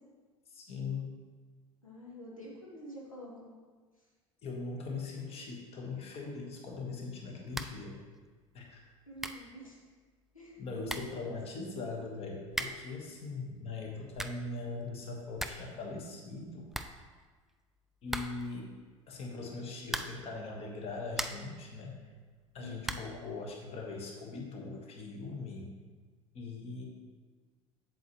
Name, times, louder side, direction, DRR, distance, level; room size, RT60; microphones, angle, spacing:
voice 1, 0.5-1.1 4.4-8.0 8.5-8.8 10.6-16.7 18.0-18.7 19.1-22.0 22.5-25.7 26.3-26.9, left 3 dB, 35° left, 0 dB, 1.3 m, -41 dB
voice 2, 1.8-3.5 4.0-4.1 9.1-9.8 10.3-11.3 22.6-23.1, equal, 85° left, -4 dB, 1.2 m, -48 dB
sound 1, 7.5-7.9 8.2-8.3 8.9-9.0 9.2-9.5 10.5-10.6 10.8-11.2 12.5-12.9 13.9-14.5 14.9-15.0 15.2-15.7 16.0-16.1 16.4-16.5 16.7-17.5 18.1-18.6 19.8-20.3 20.8-21.6 22.8-23.2, right 1 dB, ahead, 0.3 m, -39 dB
7.9 x 7.4 x 3.0 m, 1.4 s
figure-of-eight pair, 70°, 17 cm